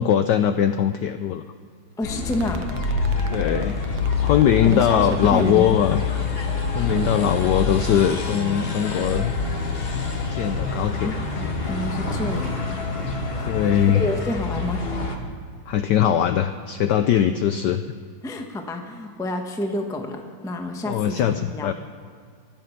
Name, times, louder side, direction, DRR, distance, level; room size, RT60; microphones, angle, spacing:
voice 1, 0.0-1.4 3.3-3.8 4.2-6.0 6.7-9.3 10.3-11.2 13.5-14.0 15.7-17.8 20.9-21.7, left 10 dB, 80° left, 10 dB, 0.9 m, -21 dB
sound 1, 2.0-15.2, left 4 dB, 30° left, 1.3 m, -27 dB
voice 2, 2.0-2.6 4.6-5.8 6.7-7.3 10.8-12.6 13.4-14.8 18.2-21.7, left 1 dB, 5° left, 4 dB, 0.5 m, -29 dB
sound 2, 2.3-5.6 6.9-8.3, right 9 dB, 70° right, 1.3 m, -35 dB
22.5 x 7.6 x 5.8 m, 2.1 s
omnidirectional pair, 2.4 m